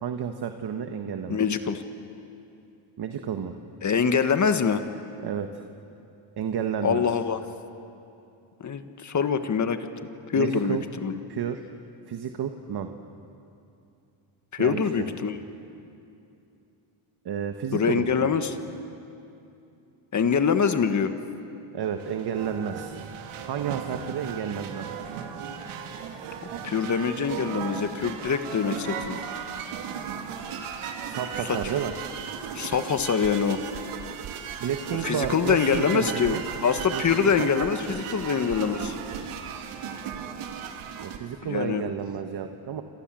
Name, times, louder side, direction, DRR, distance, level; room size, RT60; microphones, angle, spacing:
voice 1, 0.0-1.4 3.0-3.5 5.2-5.5 6.4-7.0 10.3-10.8 11.3-11.6 12.1-12.9 14.6-15.0 17.2-18.3 21.7-22.9 23.4-24.8 31.0-31.9 34.6-36.4 36.9-37.5 41.0-42.8, right 8 dB, 50° right, 6 dB, 1.6 m, -31 dB
voice 2, 1.3-1.8 3.8-4.8 6.8-7.4 8.6-9.9 10.3-11.1 14.5-15.3 17.7-18.6 20.1-21.1 26.6-29.2 31.4-31.7 32.5-33.6 35.0-39.0 41.4-41.8, left 6 dB, 35° left, 8 dB, 1.7 m, -24 dB
sound 1, 21.8-41.2, right 7 dB, 80° right, 2.7 m, -36 dB
28.5 x 27.0 x 7.8 m, 2.7 s
cardioid pair, 115°, 50 cm